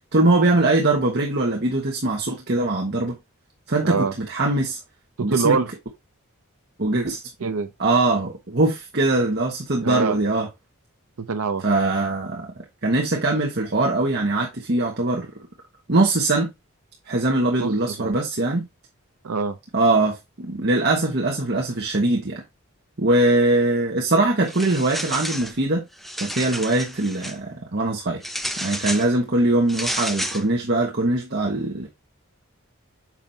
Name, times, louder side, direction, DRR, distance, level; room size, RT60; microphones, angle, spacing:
voice 1, 0.1-3.2 3.7-4.8 5.2-5.6 6.8-7.2 7.8-10.5 11.6-15.3 15.9-16.5 17.1-18.7 19.7-22.4 23.0-25.8 26.2-28.2 28.6-31.9, right 2 dB, 50° right, 1.3 m, -22 dB
voice 2, 3.8-4.1 5.2-5.7 7.4-7.7 9.8-10.2 11.2-11.6 17.6-18.2 19.2-19.6, right 5 dB, 80° right, 0.7 m, -24 dB
sound 1, 24.4-25.6 25.9-27.4 28.2-29.1 29.7-30.4, equal, ahead, 0.6 m, -30 dB
7.3 x 5.8 x 2.8 m
head